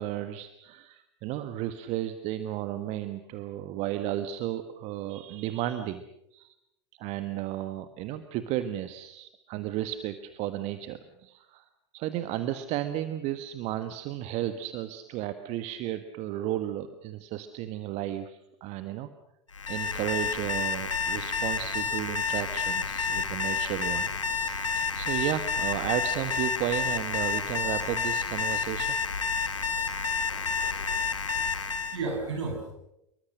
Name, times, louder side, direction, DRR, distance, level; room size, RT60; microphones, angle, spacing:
voice 1, 0.0-6.0 6.3-6.5 7.0-11.6 11.9-19.1 19.7-29.0, right 12 dB, 45° right, 10 dB, 1.5 m, -33 dB
Alarm, 19.5-32.0, left 5 dB, 80° left, 1.7 m, -30 dB
voice 2, 31.3-32.7, right 3 dB, 65° right, 4 dB, 7.7 m, -34 dB
26.5 x 23.5 x 6.5 m, 0.83 s
figure-of-eight pair, 80°, 16 cm